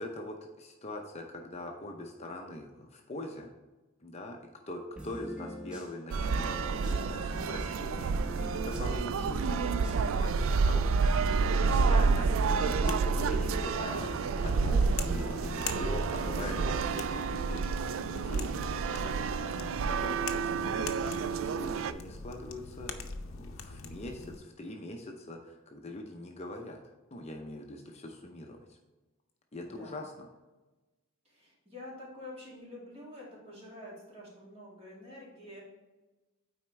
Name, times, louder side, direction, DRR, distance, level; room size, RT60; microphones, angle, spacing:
voice 1, 0.0-3.5 4.0-9.5 9.9-19.6 19.9-23.1 23.3-26.8 27.1-28.8 29.5-30.3, left 1 dB, 30° left, 2 dB, 0.6 m, -43 dB
sound 1, 5.0-10.3 11.0-17.0, equal, 5° right, 1.3 m, -43 dB
sound 2, 6.1-21.9, right 4 dB, 70° right, 0.3 m, -29 dB
voice 2, 7.2-7.7 10.7-11.2 29.6-30.2 31.2-35.6, left 1 dB, 30° right, -5 dB, 2.3 m, -48 dB
sound 3, 10.6-24.4, left 4 dB, 75° left, 0.7 m, -44 dB
9.2 x 4.3 x 3.2 m, 1.1 s
head